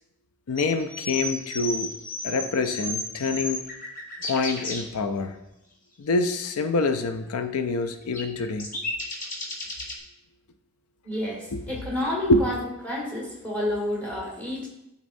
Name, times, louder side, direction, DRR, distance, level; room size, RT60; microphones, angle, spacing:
voice 1, 0.5-1.9 2.2-3.6 4.2-5.3 6.0-8.7 11.5-11.6 12.3-12.5, left 3 dB, 80° left, 8 dB, 0.5 m, -26 dB
sound 1, 0.6-4.8 8.1-9.9, left 2 dB, 35° left, 1.3 m, -33 dB
voice 2, 11.0-12.6 12.8-14.7, left 1 dB, 5° left, -5 dB, 1.7 m, -30 dB
12.5 x 4.1 x 2.6 m, 0.87 s
head